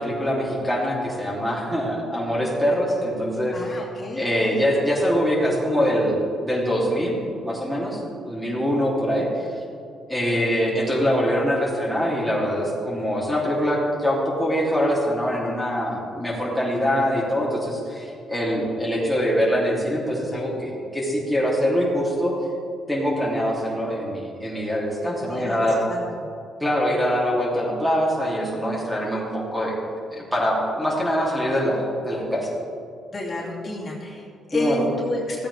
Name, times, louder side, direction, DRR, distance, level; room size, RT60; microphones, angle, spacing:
voice 1, 0.0-3.8 4.1-9.5 10.1-22.3 22.9-25.8 26.6-29.8 30.1-32.5 34.5-34.8, equal, ahead, -5 dB, 2.8 m, -24 dB
voice 2, 3.5-4.6 25.0-26.3 33.1-35.5, left 1 dB, 40° left, -5 dB, 2.5 m, -31 dB
15.0 x 8.6 x 3.4 m, 2.5 s
cardioid pair, 90°, 0 cm